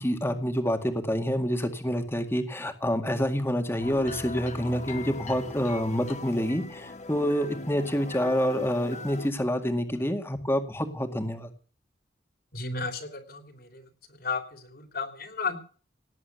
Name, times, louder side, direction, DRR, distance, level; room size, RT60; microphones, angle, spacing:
voice 1, 0.0-11.5, equal, 15° left, 6 dB, 2.0 m, -27 dB
sound 1, 3.8-9.3, left 3 dB, 40° left, 1.2 m, -40 dB
voice 2, 12.5-13.8 14.2-15.6, left 4 dB, 55° left, 6 dB, 3.1 m, -34 dB
18.0 x 7.9 x 8.1 m, 0.41 s
head